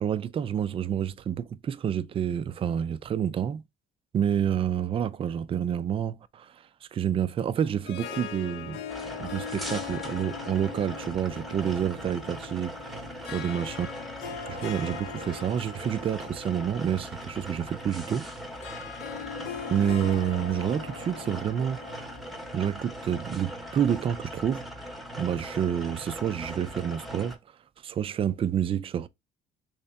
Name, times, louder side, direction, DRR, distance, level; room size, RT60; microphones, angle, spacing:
voice 1, 0.0-3.6 4.1-6.5 6.9-8.8 9.2-13.9 14.5-18.3 19.7-22.1 22.5-24.6 25.2-27.4 27.8-29.1, right 9 dB, 35° right, 0.3 m, -28 dB
Harp, 7.6-22.9, left 8 dB, 80° left, 0.7 m, -41 dB
sound 1, 8.9-27.4, equal, ahead, 0.8 m, -40 dB
3.2 x 2.8 x 3.3 m
cardioid pair, 110°, 17 cm